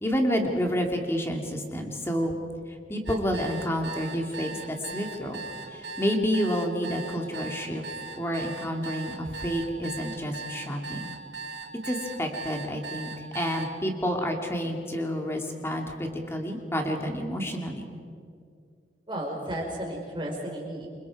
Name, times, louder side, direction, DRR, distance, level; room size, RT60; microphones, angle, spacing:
voice 1, 0.0-2.3 2.9-7.8 8.2-11.1 11.8-17.9, equal, 15° left, 2 dB, 2.3 m, -29 dB
sound 1, 3.1-13.7, right 4 dB, 80° right, 1.9 m, -39 dB
voice 2, 19.1-20.9, right 1 dB, 30° right, -1 dB, 4.8 m, -33 dB
28.0 x 25.0 x 4.8 m, 2.2 s
head